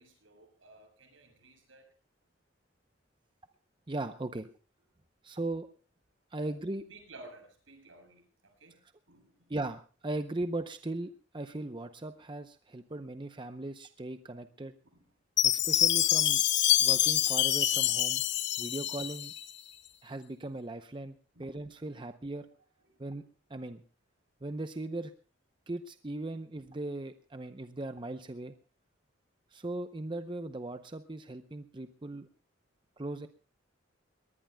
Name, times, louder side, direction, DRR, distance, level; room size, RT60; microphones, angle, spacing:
voice 1, 0.0-1.9 4.4-4.5 6.4-6.6 6.9-8.8 9.1-9.6 14.9-15.1 16.7-16.9 18.7-18.8 21.3-21.6 22.8-23.2, right 2 dB, 80° right, 4 dB, 7.0 m, -55 dB
voice 2, 3.9-4.5 5.2-5.7 6.3-6.8 9.5-14.7 15.4-16.4 16.8-18.2 18.6-19.3 20.0-22.5 23.0-23.2 23.5-23.8 24.4-25.1 25.7-28.5 29.5-32.3 33.0-33.3, right 2 dB, 25° right, 9 dB, 0.6 m, -38 dB
Chime, 15.4-19.5, left 12 dB, 60° left, 0.8 m, -26 dB
21.5 x 19.5 x 2.2 m, 0.39 s
head